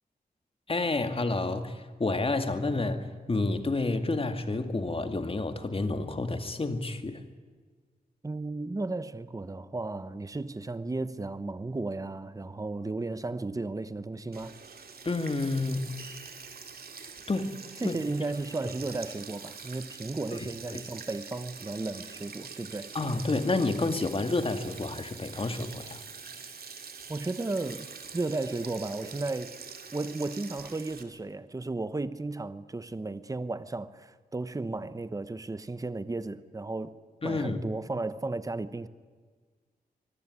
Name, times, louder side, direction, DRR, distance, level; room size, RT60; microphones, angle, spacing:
voice 1, 0.7-7.2 15.0-16.0 17.3-17.5 17.8-18.0 20.4-20.8 22.9-26.0 37.2-37.6, left 2 dB, 35° left, 2.1 m, -29 dB
voice 2, 8.2-14.6 17.8-22.9 27.1-29.5 29.9-36.9 37.2-38.9, right 2 dB, 20° right, 1.0 m, -34 dB
Sink (filling or washing), 14.3-31.0, right 5 dB, 70° right, 2.7 m, -45 dB
25.0 x 19.5 x 9.8 m
wide cardioid pair, 100°, 16 cm